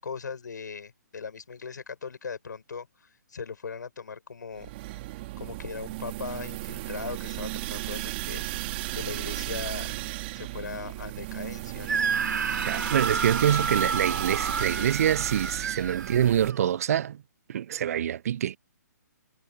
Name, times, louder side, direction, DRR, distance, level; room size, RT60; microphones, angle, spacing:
voice 1, 0.0-4.7 5.4-8.7 8.9-9.9 10.3-12.0, left 5 dB, 75° left, 7.4 m, -39 dB
sound 1, 4.6-16.5, right 19 dB, 35° right, 3.0 m, -35 dB
Screaming, 11.9-16.7, right 5 dB, 75° right, 3.5 m, -30 dB
voice 2, 12.6-17.2 17.5-18.6, right 10 dB, 50° right, 0.4 m, -25 dB
hypercardioid pair, 140°, 10 cm